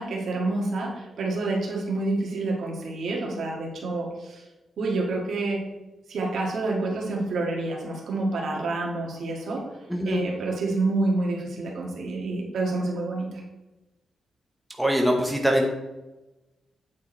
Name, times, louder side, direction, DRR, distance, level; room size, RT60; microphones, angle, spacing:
voice 1, 0.0-4.4 4.8-5.6 6.1-9.6 10.0-13.4, right 2 dB, 70° right, -1 dB, 1.7 m, -28 dB
voice 2, 9.9-10.2 14.8-15.7, equal, ahead, 0 dB, 0.9 m, -22 dB
8.4 x 4.7 x 4.4 m, 1.1 s
wide cardioid pair, 165°, 0 cm